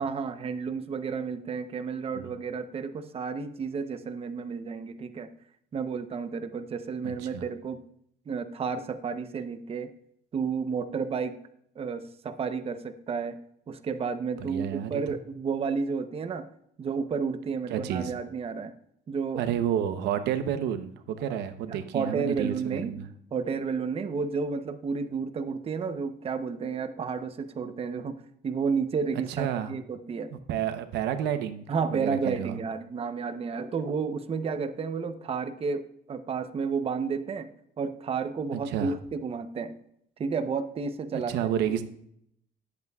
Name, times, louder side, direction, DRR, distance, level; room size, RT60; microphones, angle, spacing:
voice 1, 0.0-5.3 5.7-7.8 8.3-9.9 10.3-11.4 11.8-13.4 13.7-16.5 16.8-18.7 19.1-19.4 21.3-21.4 21.7-23.0 23.3-30.3 31.7-37.5 37.8-39.8 40.2-41.3, right 5 dB, 35° right, 9 dB, 0.8 m, -31 dB
voice 2, 7.0-7.4 14.4-15.0 17.7-18.1 19.4-23.1 29.3-29.7 30.3-31.6 31.9-32.6 38.5-38.9 41.1-41.8, right 9 dB, 85° right, 10 dB, 0.8 m, -30 dB
18.5 x 8.3 x 2.4 m, 0.72 s
cardioid pair, 110°, 17 cm